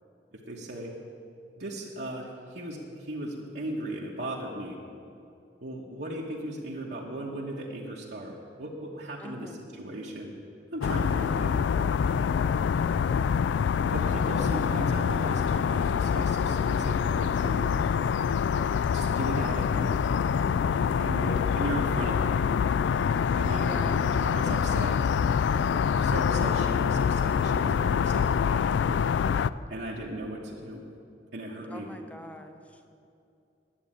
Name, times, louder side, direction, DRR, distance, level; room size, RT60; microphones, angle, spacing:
voice 1, 0.3-0.9 1.6-4.8 5.6-9.5 9.8-10.3 10.7-11.8 13.9-17.6 18.9-19.9 21.0-22.5 23.3-25.0 26.0-28.7 29.7-30.8 31.3-31.9, right 1 dB, 70° right, -4 dB, 1.3 m, -37 dB
voice 2, 9.2-9.6 23.5-24.1 31.7-32.8, equal, 10° left, 5 dB, 0.9 m, -44 dB
sound 1, 10.8-29.5, left 7 dB, 80° left, 0.3 m, -25 dB
10.5 x 8.3 x 8.9 m, 2.6 s
head